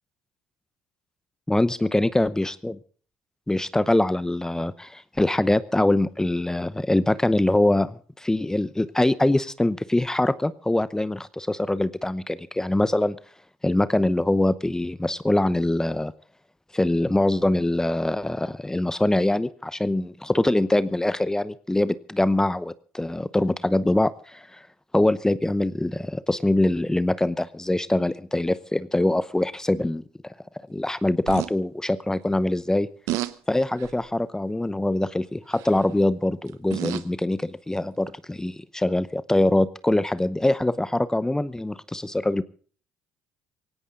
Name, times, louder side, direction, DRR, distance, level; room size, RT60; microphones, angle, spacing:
voice 1, 1.5-2.8 3.5-13.2 13.6-16.1 16.7-24.6 24.9-30.3 30.7-32.9 33.5-42.4, left 1 dB, 10° left, 16 dB, 0.8 m, -23 dB
sound 1, 31.3-31.5 33.1-33.3 33.8-34.1 35.5-35.8 36.5-37.1 38.1-38.2, right 16 dB, 75° right, 0.9 m, -31 dB
17.5 x 17.0 x 3.9 m, 0.44 s
hypercardioid pair, 65°, 5 cm